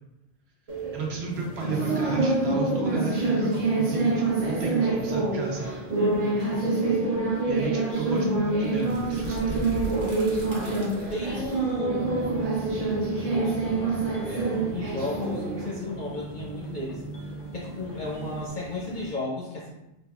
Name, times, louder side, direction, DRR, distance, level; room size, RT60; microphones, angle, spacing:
sound 1, 0.7-19.1, right 3 dB, 45° right, 0.5 m, -27 dB
voice 1, 0.9-5.7 7.5-9.7, right 4 dB, 65° right, -1 dB, 0.8 m, -33 dB
voice 2, 5.9-6.8 11.1-14.0 14.2-17.0 17.5-19.8, left 2 dB, 55° left, -4 dB, 0.5 m, -35 dB
sound 2, 8.6-14.4, equal, 85° right, 1.1 m, -40 dB
sound 3, 11.7-18.5, equal, 90° left, 1.0 m, -40 dB
3.3 x 2.1 x 2.3 m, 0.87 s
omnidirectional pair, 1.2 m